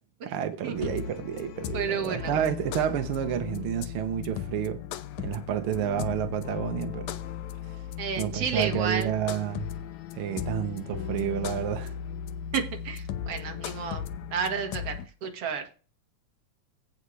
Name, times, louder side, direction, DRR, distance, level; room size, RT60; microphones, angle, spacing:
voice 1, 0.2-4.8 5.2-7.1 8.2-9.6 10.2-11.9, right 10 dB, 70° right, 1.3 m, -30 dB
sound 1, 0.8-15.1, left 9 dB, 75° left, 2.0 m, -36 dB
voice 2, 1.7-2.4 8.0-9.1 12.5-14.0 14.3-15.0 15.2-15.7, right 6 dB, 55° right, 2.4 m, -31 dB
16.5 x 5.6 x 3.2 m
omnidirectional pair, 3.4 m